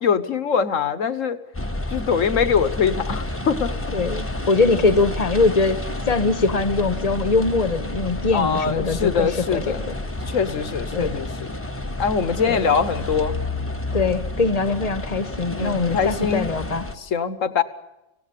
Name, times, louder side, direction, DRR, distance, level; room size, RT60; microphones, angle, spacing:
voice 1, 0.0-1.4 1.9-3.7 8.3-10.0 10.3-11.3 12.0-13.4 15.6-16.5 17.0-17.6, left 6 dB, 65° left, 13 dB, 1.6 m, -23 dB
sound 1, 1.5-17.0, left 2 dB, 10° left, 1.1 m, -30 dB
voice 2, 3.9-5.8 6.1-9.9 10.9-11.1 12.4-12.8 13.9-16.8, left 3 dB, 30° left, 11 dB, 1.3 m, -22 dB
26.0 x 17.5 x 8.4 m, 0.97 s
omnidirectional pair, 1.4 m